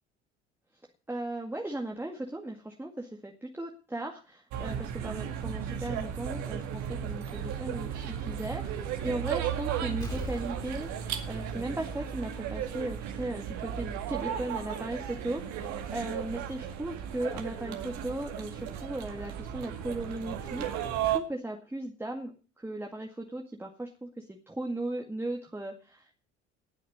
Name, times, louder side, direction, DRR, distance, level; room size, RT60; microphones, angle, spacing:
voice 1, 1.1-26.2, right 1 dB, 5° right, 1 dB, 2.0 m, -37 dB
sound 1, 4.5-21.2, right 9 dB, 55° right, 2.0 m, -35 dB
Explosion, 10.0-12.6 13.0-13.1, left 1 dB, 10° left, 4.2 m, -42 dB
19.5 x 6.5 x 6.8 m, 0.37 s
figure-of-eight pair, 55°, 34 cm